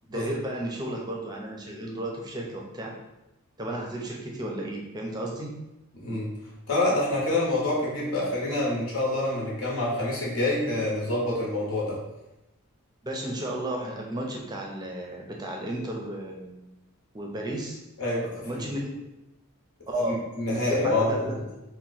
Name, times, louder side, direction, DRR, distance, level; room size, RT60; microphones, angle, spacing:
voice 1, 0.1-2.9 3.6-5.5 13.0-16.7 17.1-17.8 18.4-18.9 19.9-20.2 20.5-21.4, right 1 dB, 20° right, 0 dB, 0.5 m, -33 dB
voice 2, 6.0-6.3 6.7-12.0 18.0-18.7 20.1-21.4, left 2 dB, 70° left, -4 dB, 0.9 m, -27 dB
2.8 x 2.1 x 4.0 m, 0.97 s
head